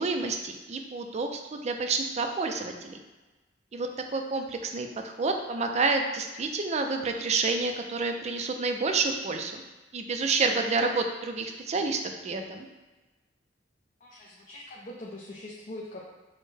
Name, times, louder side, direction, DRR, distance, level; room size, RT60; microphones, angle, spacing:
voice 1, 0.0-3.0 3.7-9.6 9.9-12.7, right 3 dB, 35° right, 5 dB, 0.4 m, -29 dB
voice 2, 14.0-16.1, left 1 dB, 45° left, -4 dB, 0.5 m, -42 dB
6.3 x 2.1 x 3.3 m, 1.2 s
head